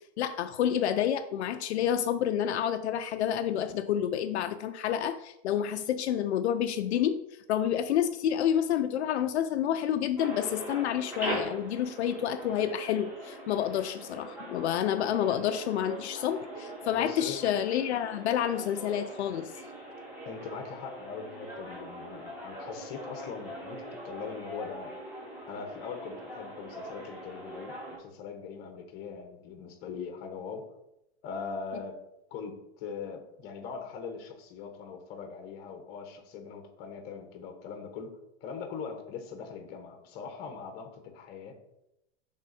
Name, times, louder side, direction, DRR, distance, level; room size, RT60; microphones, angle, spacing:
voice 1, 0.2-7.2 7.5-19.5, left 10 dB, 85° left, 9 dB, 0.5 m, -29 dB
sound 1, 10.2-28.0, right 1 dB, 5° right, 2.2 m, -42 dB
voice 2, 16.9-17.4 20.2-24.9 25.5-30.7 31.2-32.0 32.3-41.6, left 5 dB, 30° left, 5 dB, 1.0 m, -41 dB
6.2 x 3.7 x 4.1 m, 0.85 s
hypercardioid pair, 150°, 32 cm